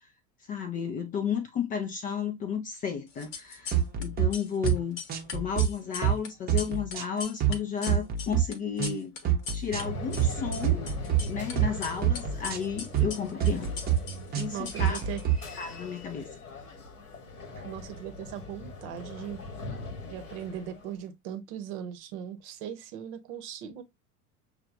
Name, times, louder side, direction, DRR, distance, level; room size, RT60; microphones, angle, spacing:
voice 1, 0.5-5.0 5.3-9.2 9.5-10.9 11.3-13.7 14.3-15.0 15.6-16.3, left 7 dB, 20° left, 0.4 m, -33 dB
sound 1, 3.1-4.1 4.3-9.8 10.1-11.5 11.8-15.5, left 5 dB, 45° left, 0.9 m, -40 dB
sound 2, 3.7-4.3 4.6-4.8 5.1-5.7 6.0-6.2 6.5-7.6 7.9-8.4 8.8-9.0 9.2-9.8 10.2-10.4 10.6-11.2 11.6-11.7 12.0-12.6 12.9-13.1 13.4-14.0 14.3-15.4, right 10 dB, 20° right, 0.8 m, -26 dB
sound 3, 9.7-21.0, left 1 dB, 70° left, 1.2 m, -40 dB
voice 2, 14.5-15.2 17.6-19.4 20.1-23.8, right 10 dB, 50° right, 0.9 m, -39 dB
6.5 x 2.3 x 2.5 m
figure-of-eight pair, 80°, 45 cm